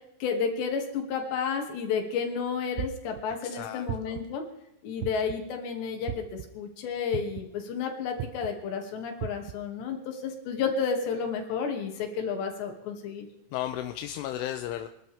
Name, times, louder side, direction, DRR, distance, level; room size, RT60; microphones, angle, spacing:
voice 1, 0.2-4.4 4.8-13.3, left 6 dB, 65° left, 3 dB, 4.4 m, -31 dB
sound 1, 2.8-3.2 3.9-4.4 5.0-5.5 6.1-6.4 7.1-7.5 8.2-8.5 9.2-9.6, right 12 dB, 80° right, 2.6 m, -35 dB
voice 2, 3.4-4.2 13.5-14.9, left 12 dB, 85° left, 7 dB, 3.2 m, -34 dB
25.5 x 12.5 x 3.6 m, 0.81 s
omnidirectional pair, 5.7 m